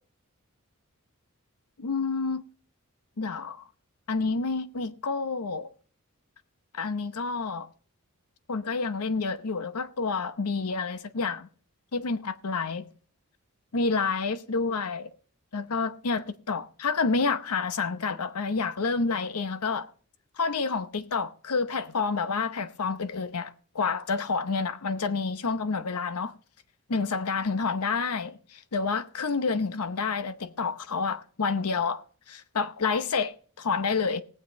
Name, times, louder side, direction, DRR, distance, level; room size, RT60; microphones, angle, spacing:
voice 1, 1.8-2.4 3.2-3.6 4.1-5.7 6.7-7.7 8.5-11.5 11.9-12.9 13.7-15.1 15.5-19.9 20.4-26.3 26.9-34.2, left 4 dB, 90° left, 0.8 m, -29 dB
19.5 x 7.6 x 4.1 m
head